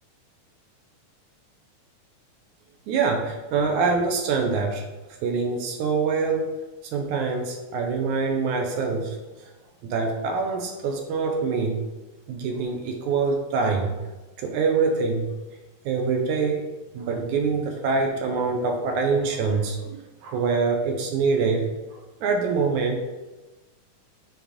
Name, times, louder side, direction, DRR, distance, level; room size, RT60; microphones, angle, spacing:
voice 1, 2.9-4.8 5.2-6.5 6.9-9.2 9.8-11.8 12.3-14.0 14.4-15.3 15.9-16.6 16.9-21.7 22.2-23.0, right 4 dB, 75° right, 3 dB, 2.1 m, -25 dB
7.0 x 3.9 x 5.0 m, 1.1 s
omnidirectional pair, 3.6 m